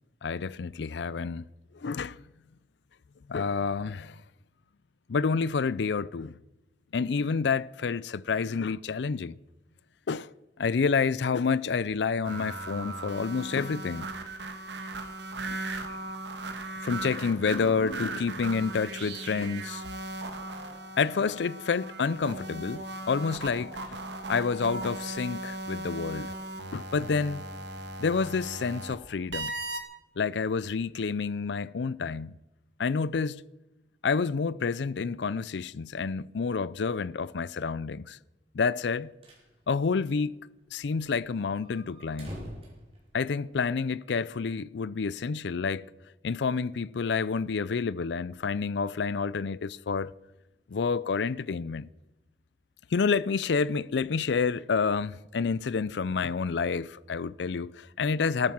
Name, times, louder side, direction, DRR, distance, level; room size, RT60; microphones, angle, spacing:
voice 1, 0.2-1.4 1.7-2.2 3.3-4.2 5.1-6.4 6.9-9.3 10.1-10.3 10.6-14.1 15.5-15.6 16.8-19.8 21.0-24.0 24.3-26.3 26.7-27.4 28.0-29.6 30.2-32.4 32.8-33.4 34.0-38.2 38.5-39.1 39.7-40.4 40.7-42.4 43.1-45.9 46.2-50.1 50.7-51.9 52.9-58.5, left 5 dB, 75° left, 0.5 m, -29 dB
sound 1, 12.2-29.0 29.3-29.8, right 2 dB, 80° right, 1.8 m, -38 dB
sound 2, 39.0-39.5 39.8-39.9 40.1-40.2 40.7-43.7, equal, 35° right, 5.3 m, -45 dB
14.0 x 12.5 x 6.0 m
head